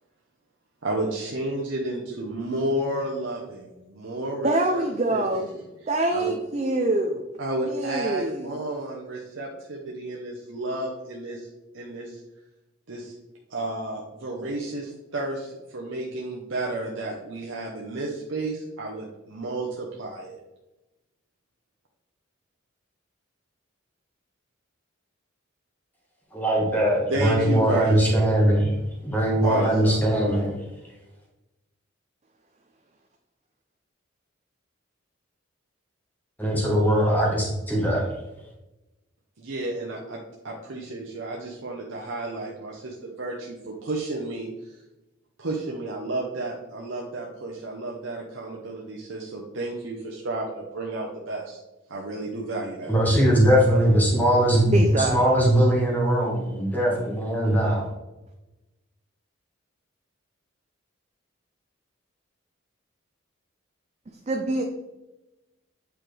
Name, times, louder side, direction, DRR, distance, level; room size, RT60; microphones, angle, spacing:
voice 1, 0.8-4.9 5.1-5.2 6.1-6.3 7.4-11.5 11.7-12.2 12.9-13.1 13.5-20.4 27.1-28.2 29.4-30.4 39.4-44.7 45.4-51.6 51.9-53.0, right 2 dB, 70° right, -2 dB, 0.9 m, -32 dB
voice 2, 4.4-5.5 5.9-7.3 7.7-8.6 54.7-55.2 64.3-64.6, right 2 dB, 35° right, 4 dB, 0.5 m, -25 dB
voice 3, 26.3-28.7 29.0-30.5 36.4-38.1 52.9-57.9, equal, 10° left, -3 dB, 1.5 m, -21 dB
8.3 x 4.6 x 3.3 m, 1.0 s
head